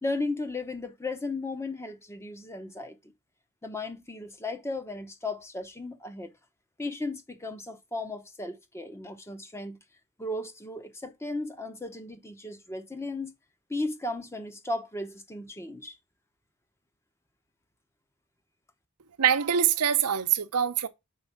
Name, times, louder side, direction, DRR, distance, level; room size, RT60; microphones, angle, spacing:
voice 1, 0.0-3.0 3.6-6.3 6.8-9.8 10.2-13.3 13.7-16.0, left 2 dB, 10° left, 0.8 m, -35 dB
voice 2, 19.2-20.9, right 9 dB, 90° right, 0.7 m, -24 dB
4.8 x 4.5 x 5.7 m
head